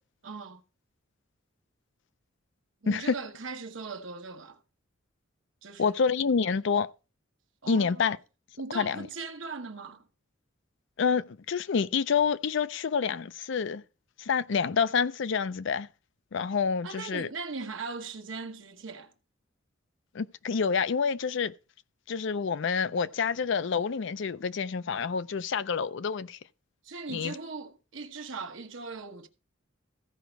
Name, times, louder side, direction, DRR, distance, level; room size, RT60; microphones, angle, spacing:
voice 1, 0.2-0.6 2.8-4.6 5.6-6.0 7.6-8.1 8.6-10.1 16.8-19.1 26.8-29.3, right 4 dB, 70° right, 1.2 m, -39 dB
voice 2, 5.8-6.9 7.7-8.2 8.7-9.1 11.0-13.8 14.2-15.9 16.3-17.3 20.1-21.5 22.1-26.4 27.1-27.3, left 6 dB, 65° left, 0.5 m, -28 dB
15.0 x 5.1 x 4.5 m
head